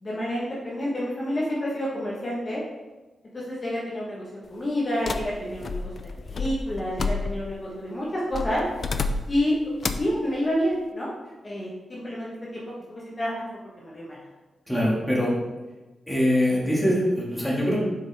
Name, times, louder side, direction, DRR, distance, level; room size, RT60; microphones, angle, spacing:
voice 1, 0.0-2.6 3.3-8.6 9.3-9.6 9.9-11.1 11.4-12.6 12.9-13.5 13.8-14.2, equal, 30° left, -6 dB, 1.3 m, -29 dB
sound 1, 5.1-7.6 8.3-9.4 9.8-10.2, left 3 dB, 45° left, 0.4 m, -30 dB
voice 2, 14.7-15.3 16.1-17.8, equal, 5° left, -6 dB, 2.0 m, -23 dB
7.2 x 5.2 x 3.5 m, 1.2 s
wide cardioid pair, 130°, 0 cm